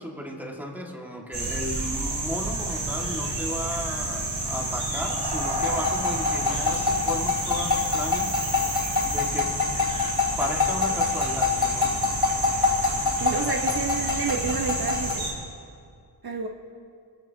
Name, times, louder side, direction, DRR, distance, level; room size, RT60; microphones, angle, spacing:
voice 1, 0.0-8.4 9.0-9.6 10.4-12.1, equal, 5° right, 0 dB, 2.0 m, -34 dB
sound 1, 1.3-15.3, right 2 dB, 80° right, 3.7 m, -30 dB
sound 2, 5.6-15.1, left 5 dB, 55° left, 4.2 m, -26 dB
voice 2, 13.2-15.2 16.2-16.5, right 4 dB, 55° right, 1 dB, 1.2 m, -29 dB
25.0 x 15.5 x 2.9 m, 2.3 s
wide cardioid pair, 85°, 45 cm